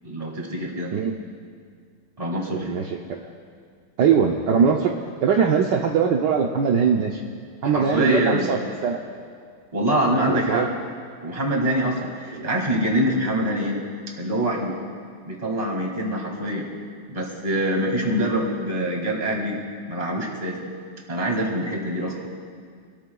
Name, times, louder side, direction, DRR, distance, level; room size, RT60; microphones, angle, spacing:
voice 1, 0.0-0.9 2.2-2.8 7.6-8.5 9.7-10.7 11.2-13.8 14.1-14.8 15.2-16.7 17.1-19.6 19.9-20.6 21.1-22.3, right 1 dB, 20° right, -1 dB, 2.1 m, -24 dB
voice 2, 2.5-3.3 4.0-4.9 5.2-7.2 7.6-9.0 10.3-10.7 12.4-12.5, right 6 dB, 70° right, 0 dB, 1.3 m, -21 dB
26.0 x 13.0 x 2.3 m, 2.1 s
omnidirectional pair, 2.1 m